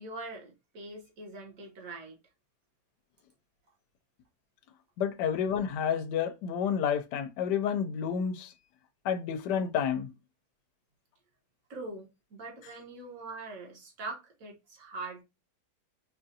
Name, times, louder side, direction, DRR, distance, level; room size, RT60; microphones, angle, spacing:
voice 1, 0.0-2.2 11.7-15.2, right 3 dB, 55° right, 1.5 m, -42 dB
voice 2, 5.0-8.5 9.0-10.1, left 7 dB, 85° left, 1.2 m, -30 dB
5.3 x 2.4 x 2.7 m
omnidirectional pair, 1.8 m